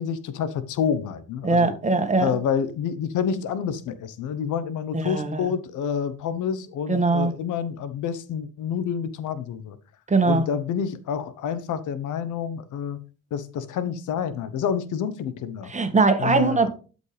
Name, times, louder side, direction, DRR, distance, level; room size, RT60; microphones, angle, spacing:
voice 1, 0.0-1.8 2.2-9.8 10.3-13.0 13.3-15.7 16.2-16.7, left 7 dB, 80° left, 1.0 m, -28 dB
voice 2, 1.4-2.4 4.9-5.5 6.9-7.3 10.1-10.5 15.7-16.7, right 3 dB, 25° right, 1.6 m, -21 dB
12.0 x 5.3 x 3.4 m
cardioid pair, 90°, 30 cm